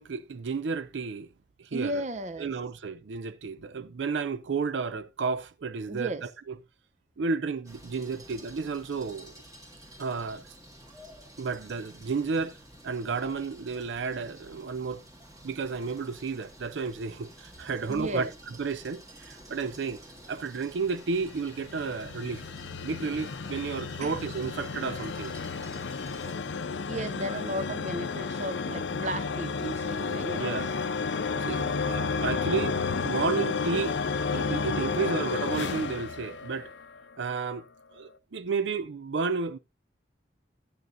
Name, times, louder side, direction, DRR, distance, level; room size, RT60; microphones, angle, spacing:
voice 1, 0.0-1.3 1.6-2.0 2.4-6.1 6.5-6.6 7.2-9.3 10.0-10.4 11.4-12.6 12.8-15.0 15.4-18.3 18.6-20.0 20.3-22.4 22.8-25.3 30.3-30.7 31.2-32.8 33.0-34.0 34.3-36.7 37.2-37.6 37.9-39.6, right 5 dB, 85° right, 0.5 m, -32 dB
voice 2, 1.7-2.5 5.9-6.3 17.9-18.3 24.0-24.2 26.7-30.4 31.3-31.8, right 1 dB, 40° right, 0.6 m, -35 dB
sound 1, 7.6-26.3, right 1 dB, 20° right, 1.7 m, -51 dB
sound 2, 20.9-37.0, left 4 dB, 85° left, 0.6 m, -32 dB
12.0 x 9.3 x 2.6 m
head